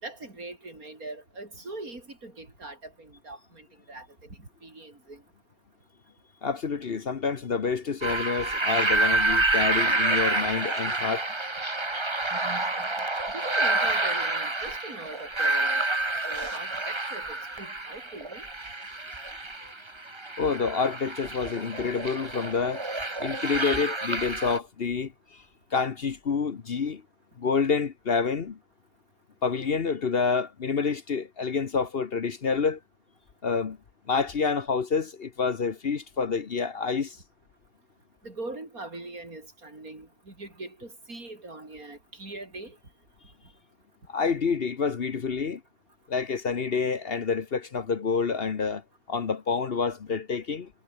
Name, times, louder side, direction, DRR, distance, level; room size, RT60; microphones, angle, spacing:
voice 1, 0.0-5.2 13.3-15.9 16.2-18.4 38.2-42.8, right 2 dB, 80° right, 6.0 m, -41 dB
voice 2, 6.4-11.3 19.6-19.7 20.4-22.8 23.2-25.4 25.7-27.0 27.4-28.6 29.4-32.8 33.4-33.8 34.1-37.2 44.1-45.6 46.1-48.8 49.1-50.7, left 5 dB, 45° left, 1.1 m, -28 dB
sound 1, 8.0-24.6, right 2 dB, 20° right, 1.7 m, -28 dB
omnidirectional pair, 1.5 m